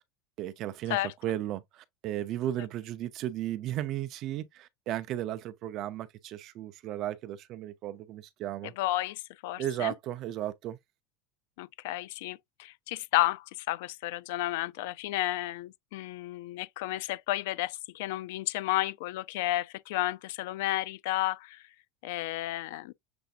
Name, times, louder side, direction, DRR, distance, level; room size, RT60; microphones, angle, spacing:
voice 1, 0.4-1.0 1.2-8.7 9.6-10.8, right 12 dB, 35° right, 0.5 m, -35 dB
voice 2, 8.6-9.9 11.6-21.6 22.0-22.9, left 16 dB, 70° left, 0.3 m, -32 dB
6.8 x 2.5 x 2.4 m
supercardioid pair, 170°, 0 cm